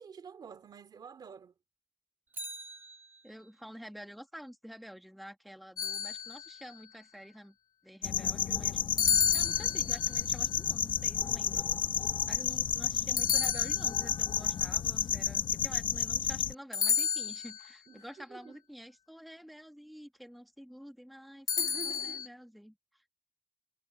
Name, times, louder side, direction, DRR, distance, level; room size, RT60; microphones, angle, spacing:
voice 1, 0.0-1.5 17.9-18.0 18.3-18.6 21.6-22.3, right 6 dB, 55° right, 2.6 m, -48 dB
Bicycle, 2.3-3.7 12.0-12.1, right 1 dB, 25° right, 1.8 m, -46 dB
voice 2, 3.2-7.6 7.8-8.8 9.3-11.7 12.3-23.1, equal, ahead, 1.6 m, -49 dB
sound 1, 5.8-6.7 9.0-10.2 13.2-14.2 16.7-17.7 21.5-22.3, left 7 dB, 50° left, 0.5 m, -31 dB
sound 2, 8.0-16.5, left 8 dB, 70° left, 1.0 m, -31 dB
wide cardioid pair, 165°, 9 cm